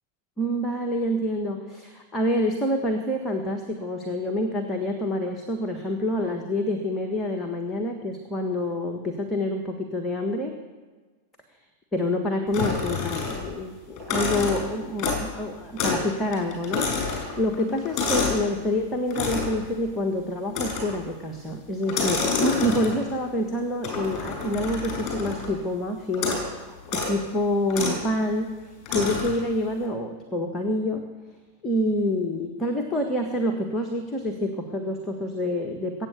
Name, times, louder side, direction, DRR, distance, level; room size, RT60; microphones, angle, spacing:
voice 1, 0.4-10.5 11.9-28.5 28.9-31.0 31.6-36.1, left 1 dB, 15° left, 2 dB, 1.6 m, -27 dB
sound 1, 12.5-13.6 14.0-15.4 15.8-16.1 16.3-18.5 19.1-19.6 20.5-21.0 21.8-23.1 23.8-25.6 26.1-26.5 26.8-27.2 27.7-28.0 28.9-29.4, left 4 dB, 35° left, 6.0 m, -28 dB
22.0 x 8.9 x 6.9 m, 1.3 s
figure-of-eight pair, 90°, 0 cm